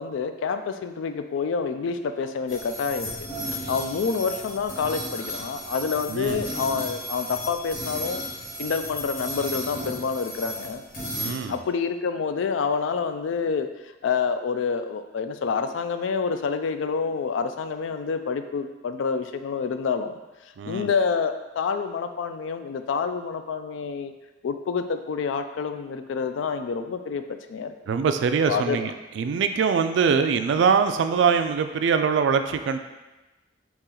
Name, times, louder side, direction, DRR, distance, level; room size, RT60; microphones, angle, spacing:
voice 1, 0.0-3.1 3.5-8.2 8.6-10.8 11.5-20.2 20.7-24.1 24.4-27.2 27.5-27.7 28.5-28.9, left 5 dB, 80° left, 8 dB, 0.3 m, -28 dB
sound 1, 2.5-11.3, equal, 45° left, 1.4 m, -34 dB
voice 2, 6.1-6.4 11.1-11.6 20.6-20.9 27.9-28.9 29.2-32.8, right 6 dB, 70° right, 8 dB, 0.3 m, -23 dB
4.2 x 3.0 x 3.8 m, 1.1 s
head